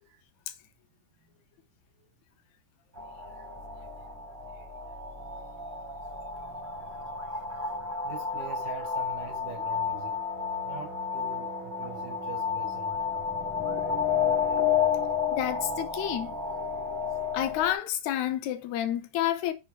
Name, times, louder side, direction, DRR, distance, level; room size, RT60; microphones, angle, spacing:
sound 1, 3.0-17.7, left 6 dB, 10° right, 0.8 m, -31 dB
voice 1, 8.0-10.2 10.6-13.0, right 7 dB, 85° right, 2.7 m, -44 dB
voice 2, 15.3-16.3 17.3-19.5, left 12 dB, 75° left, 1.9 m, -30 dB
6.4 x 3.0 x 5.7 m
omnidirectional pair, 3.6 m